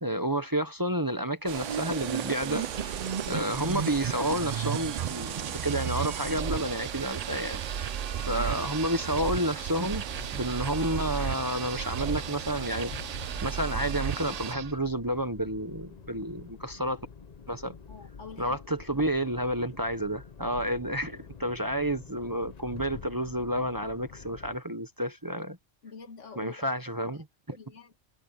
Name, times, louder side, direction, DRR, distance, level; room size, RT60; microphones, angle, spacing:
voice 1, 0.0-3.0 3.3-7.6 8.3-10.0 10.3-12.9 13.4-17.1 17.5-17.8 18.4-25.6 26.4-27.6, right 1 dB, 20° right, 1.0 m, -30 dB
sound 1, 1.5-14.8, right 8 dB, 55° right, 0.4 m, -34 dB
sound 2, 1.5-14.5, right 9 dB, 85° right, 1.1 m, -39 dB
sound 3, 10.1-24.6, left 6 dB, 40° left, 0.8 m, -47 dB
voice 2, 17.9-18.6 25.8-26.7 27.5-28.0, left 5 dB, 80° left, 2.0 m, -44 dB
omnidirectional pair, 1.2 m